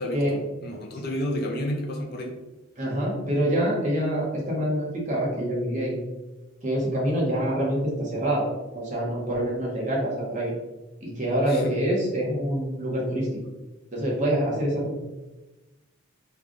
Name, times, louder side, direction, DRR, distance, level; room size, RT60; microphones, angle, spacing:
voice 1, 0.0-2.3 11.5-11.7, left 1 dB, 45° left, 0 dB, 0.5 m, -31 dB
voice 2, 2.8-5.9 6.6-8.4 8.7-10.5 11.0-13.3 13.9-14.9, right 1 dB, 35° right, -4 dB, 1.0 m, -26 dB
3.2 x 2.4 x 3.7 m, 1.1 s
head